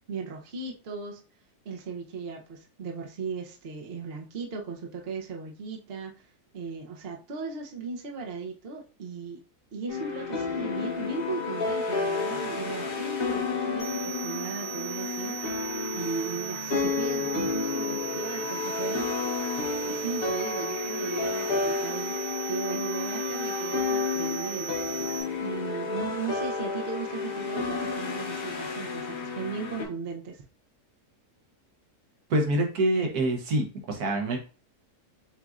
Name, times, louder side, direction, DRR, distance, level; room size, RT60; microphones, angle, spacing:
voice 1, 0.1-1.2 1.6-6.1 6.5-9.4 9.7-15.6 15.9-19.1 19.8-22.2 22.5-24.7 25.4-30.4, right 5 dB, 50° right, 1 dB, 0.8 m, -37 dB
sound 1, 9.9-29.9, left 4 dB, 60° left, 1.5 m, -31 dB
sound 2, 13.8-25.2, right 14 dB, 85° left, 3.0 m, -38 dB
voice 2, 32.3-34.4, right 1 dB, 75° right, 2 dB, 1.5 m, -26 dB
7.1 x 2.5 x 2.4 m, 0.35 s
omnidirectional pair, 1.7 m